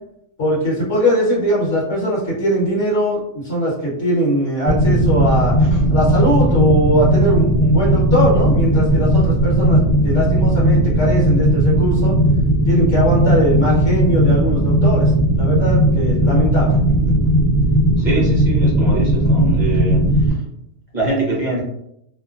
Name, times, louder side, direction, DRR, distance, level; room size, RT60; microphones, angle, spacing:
voice 1, 0.4-5.5 5.9-12.1 12.7-15.1 15.4-16.7, equal, 60° left, -6 dB, 1.4 m, -20 dB
sound 1, 4.6-20.3, right 1 dB, 40° left, 1.2 m, -16 dB
voice 2, 18.0-20.4 20.9-21.6, right 2 dB, 40° right, -3 dB, 0.8 m, -24 dB
2.8 x 2.2 x 2.4 m, 0.76 s
omnidirectional pair, 1.5 m